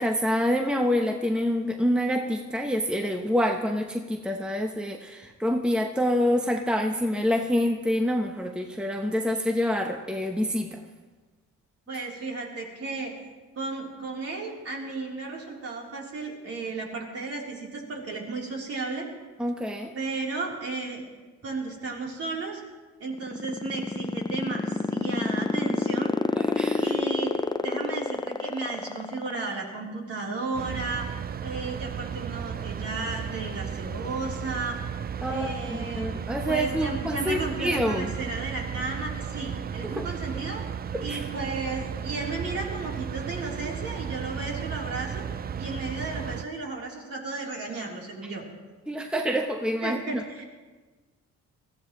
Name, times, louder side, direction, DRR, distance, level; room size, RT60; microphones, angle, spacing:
voice 1, 0.0-10.8 19.4-19.9 26.3-26.9 35.2-38.1 39.8-40.1 40.9-41.2 48.9-50.2, equal, 5° right, 4 dB, 0.9 m, -27 dB
voice 2, 11.9-13.1 13.6-19.1 19.9-21.0 21.4-22.6 23.0-26.1 26.8-31.2 31.4-34.8 35.3-36.1 36.5-40.6 41.0-45.2 45.6-48.4 49.8-50.4, right 3 dB, 50° right, -2 dB, 3.6 m, -34 dB
sound 1, 23.1-29.7, left 3 dB, 15° left, 0.6 m, -26 dB
sound 2, 30.5-46.4, right 7 dB, 30° right, 0.4 m, -34 dB
20.5 x 15.0 x 3.1 m, 1.3 s
cardioid pair, 90°, 30 cm